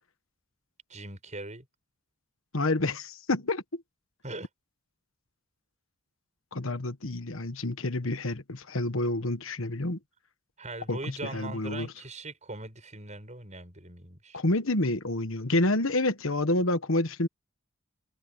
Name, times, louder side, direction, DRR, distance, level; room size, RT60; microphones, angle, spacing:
voice 1, 0.9-1.7 4.2-4.5 10.6-14.4, right 2 dB, 35° right, 6.6 m, -40 dB
voice 2, 2.5-3.8 6.5-10.0 10.9-11.0 11.3-11.9 14.3-17.3, left 2 dB, 65° left, 1.4 m, -28 dB
head